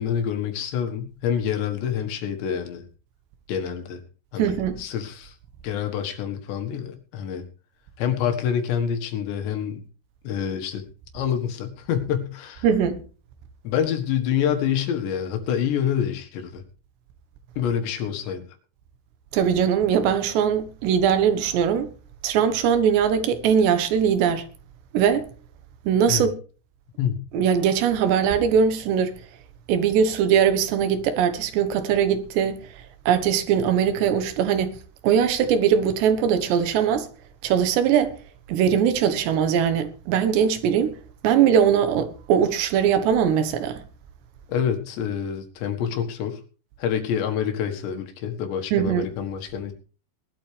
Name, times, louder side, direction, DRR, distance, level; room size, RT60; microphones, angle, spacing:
voice 1, 0.0-2.8 3.5-4.0 4.3-5.4 5.6-7.4 8.0-9.8 10.2-10.8 11.1-12.7 13.6-16.6 17.6-18.4 26.1-26.3 27.0-27.2 44.5-46.4 46.8-49.7, left 8 dB, 85° left, 3.9 m, -27 dB
voice 2, 4.4-4.8 12.6-13.0 19.3-21.9 22.2-24.5 24.9-25.3 25.9-26.3 27.3-29.1 29.7-32.7 33.1-34.8 35.0-37.1 37.4-38.2 38.5-40.9 41.2-43.8 48.7-49.1, right 8 dB, 80° right, 3.5 m, -21 dB
19.5 x 12.0 x 3.4 m
omnidirectional pair, 4.9 m